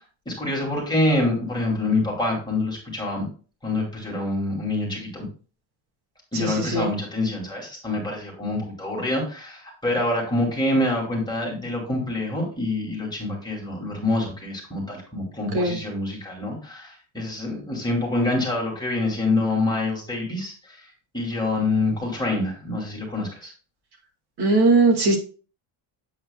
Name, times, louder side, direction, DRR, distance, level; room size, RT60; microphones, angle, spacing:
voice 1, 0.3-3.3 3.6-5.3 6.3-23.5, left 2 dB, 10° left, -2 dB, 2.5 m, -26 dB
voice 2, 6.3-6.9 15.5-15.8 24.4-25.2, right 3 dB, 50° right, 2 dB, 2.2 m, -19 dB
8.3 x 7.7 x 2.3 m, 0.37 s
cardioid pair, 165°, 49 cm